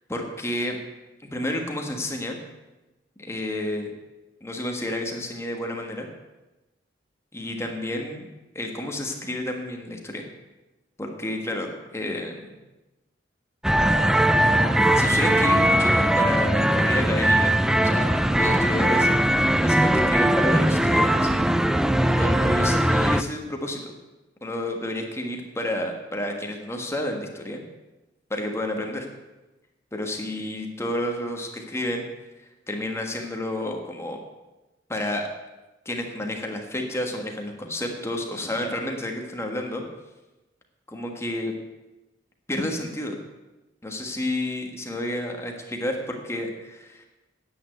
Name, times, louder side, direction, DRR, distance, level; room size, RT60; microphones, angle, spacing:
voice 1, 0.1-0.8 1.3-2.4 3.2-3.9 4.4-6.1 7.3-8.3 8.5-10.2 11.0-12.5 14.9-17.5 17.8-21.3 22.1-23.9 24.4-27.6 28.3-29.0 29.9-32.0 32.7-34.2 34.9-35.3 35.8-39.8 40.9-41.5 42.5-43.2 43.8-47.1, left 1 dB, 15° left, 2 dB, 1.5 m, -30 dB
sound 1, 13.6-23.2, right 1 dB, 5° right, 0.4 m, -20 dB
9.9 x 8.9 x 8.0 m, 1.1 s
head